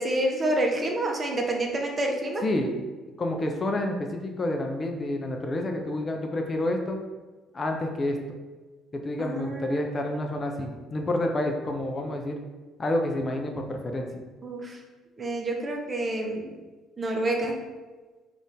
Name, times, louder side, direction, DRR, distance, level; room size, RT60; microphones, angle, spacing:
voice 1, 0.0-2.4 9.2-10.1 14.4-14.8 15.2-16.5 17.0-17.6, right 1 dB, 30° right, 1 dB, 0.6 m, -28 dB
voice 2, 2.4-2.8 3.2-7.0 7.5-8.2 9.0-12.4 12.8-14.2, left 1 dB, 35° left, 3 dB, 0.4 m, -29 dB
2.5 x 2.5 x 3.5 m, 1.3 s
hypercardioid pair, 50°, 0 cm